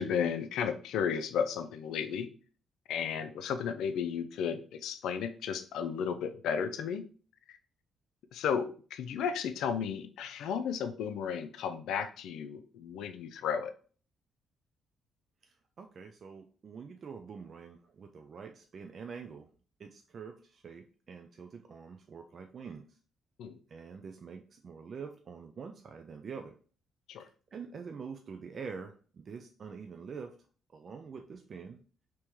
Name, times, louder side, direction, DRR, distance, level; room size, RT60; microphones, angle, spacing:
voice 1, 0.0-2.3 2.9-7.0 7.5-7.6 8.3-13.7 23.4-23.6 27.1-27.3, left 7 dB, 80° left, 9 dB, 0.4 m, -34 dB
voice 2, 15.4-19.5 19.8-23.0 23.7-26.5 27.2-30.4 30.7-31.8, right 5 dB, 50° right, 5 dB, 0.4 m, -46 dB
3.0 x 3.0 x 3.5 m, 0.40 s
cardioid pair, 90°, 0 cm